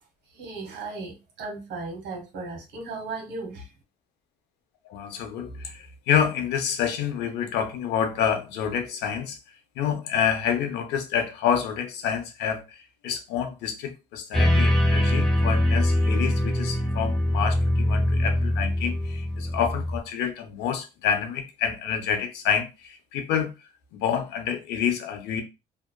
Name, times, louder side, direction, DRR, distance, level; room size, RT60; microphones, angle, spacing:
voice 1, 0.3-3.7, right 3 dB, 80° right, 1.2 m, -36 dB
voice 2, 4.8-9.4 9.8-23.5 23.9-25.4, left 8 dB, 85° left, 0.6 m, -28 dB
sound 1, 14.3-20.0, left 1 dB, 5° left, 0.7 m, -23 dB
2.7 x 2.3 x 2.2 m
cardioid pair, 110°, 17 cm